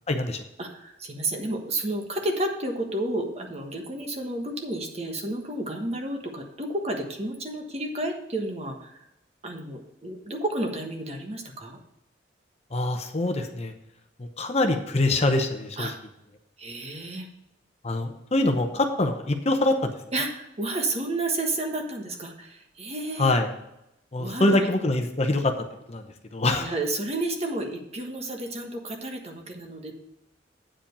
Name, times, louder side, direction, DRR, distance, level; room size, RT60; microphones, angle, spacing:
voice 1, 0.1-0.5 12.7-13.7 14.2-15.9 17.8-19.9 23.2-23.5 24.1-26.0 26.3-26.7, left 2 dB, 35° left, 6 dB, 0.8 m, -24 dB
voice 2, 0.6-9.0 9.4-11.8 15.8-15.9 16.6-17.3 20.1-23.3 24.2-24.7 26.6-29.9, right 2 dB, 35° right, 2 dB, 1.3 m, -31 dB
8.8 x 5.0 x 6.7 m, 0.84 s
head